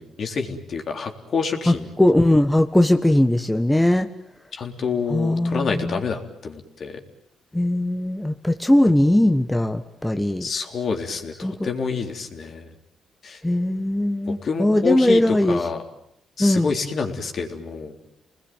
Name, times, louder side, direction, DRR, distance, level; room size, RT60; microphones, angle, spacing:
voice 1, 0.0-1.9 4.5-7.0 10.4-12.7 13.2-13.4 14.3-15.8 16.4-18.1, left 5 dB, 50° left, 4 dB, 3.8 m, -28 dB
voice 2, 1.7-4.1 5.1-6.0 7.5-10.5 11.4-11.7 13.4-15.6 16.4-16.7, left 1 dB, 10° left, 7 dB, 1.4 m, -19 dB
30.0 x 20.5 x 9.1 m, 0.74 s
cardioid pair, 90°, 0 cm